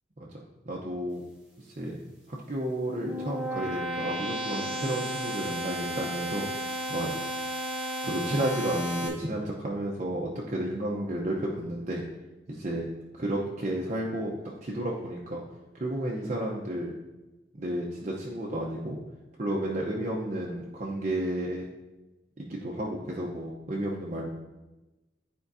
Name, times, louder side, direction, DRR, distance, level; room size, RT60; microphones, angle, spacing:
voice 1, 0.7-1.2 1.6-2.0 2.3-6.4 6.9-7.1 8.0-12.0 12.5-12.9 13.1-15.4 15.7-16.9 17.5-19.0 19.4-21.7 22.4-24.3, right 1 dB, 40° right, -3 dB, 0.7 m, -32 dB
sound 1, 2.6-9.1, equal, 10° right, 1.1 m, -33 dB
9.7 x 4.5 x 2.6 m, 1.1 s
head